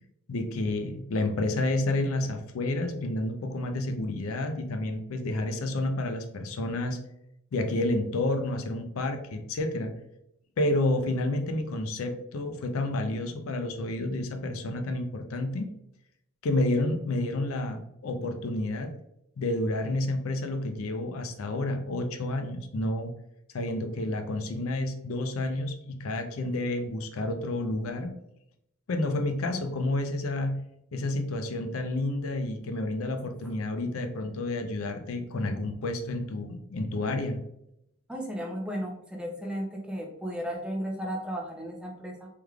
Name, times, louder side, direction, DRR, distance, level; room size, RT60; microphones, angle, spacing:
voice 1, 0.3-7.0 7.5-9.9 10.6-15.7 16.4-18.9 19.4-23.1 23.5-28.1 28.9-30.6 30.9-37.4, left 2 dB, 80° left, 5 dB, 0.5 m, -30 dB
voice 2, 38.1-42.3, equal, 5° right, 0 dB, 0.5 m, -34 dB
3.4 x 3.2 x 2.3 m, 0.80 s
head